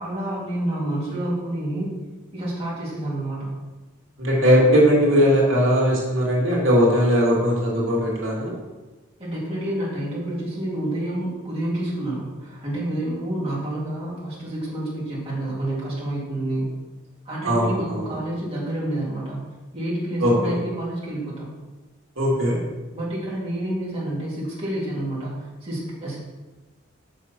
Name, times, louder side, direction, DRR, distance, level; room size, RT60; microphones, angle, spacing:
voice 1, 0.0-1.9 2.3-3.5 9.2-16.7 17.2-19.4 19.7-21.6 22.9-26.2, right 1 dB, 30° right, -7 dB, 3.1 m, -28 dB
voice 2, 4.2-8.5 17.4-18.1 20.2-20.6 22.2-22.6, equal, 85° right, -4 dB, 2.4 m, -19 dB
6.5 x 6.3 x 5.9 m, 1.2 s
head